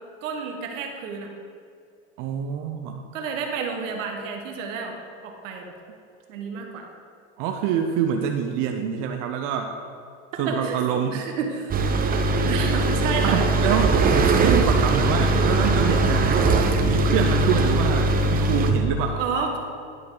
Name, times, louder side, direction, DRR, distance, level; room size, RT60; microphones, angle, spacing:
voice 1, 0.2-1.3 3.1-4.9 5.2-5.7 6.3-6.9 10.5-10.8 11.1-11.9 12.4-14.2 19.2-19.6, right 5 dB, 80° right, 2 dB, 1.5 m, -30 dB
voice 2, 2.2-3.1 7.4-9.8 10.4-11.3 13.2-14.0 14.4-16.6 16.8-19.2, right 7 dB, 55° right, 4 dB, 0.7 m, -26 dB
sound 1, 11.7-18.7, right 2 dB, 25° right, 0.6 m, -20 dB
11.0 x 5.2 x 3.9 m, 2.4 s
supercardioid pair, 115°, 37 cm